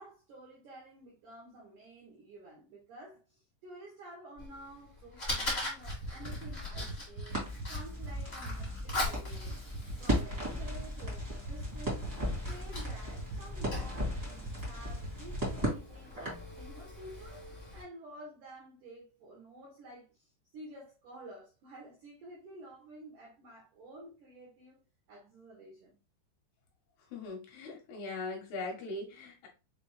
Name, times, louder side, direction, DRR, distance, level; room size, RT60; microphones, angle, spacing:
voice 1, 0.0-7.4 7.7-9.6 9.9-12.0 12.5-17.4 17.7-24.8 25.1-26.0, right 1 dB, 75° right, 1.9 m, -51 dB
Fire, 4.4-17.8, left 2 dB, 30° left, 0.9 m, -42 dB
sound 1, 5.9-15.8, right 3 dB, 90° right, 1.9 m, -41 dB
Crackle, 7.3-16.5, equal, 25° right, 0.8 m, -37 dB
voice 2, 27.1-29.5, left 3 dB, 75° left, 2.7 m, -40 dB
6.6 x 2.3 x 3.1 m
omnidirectional pair, 5.2 m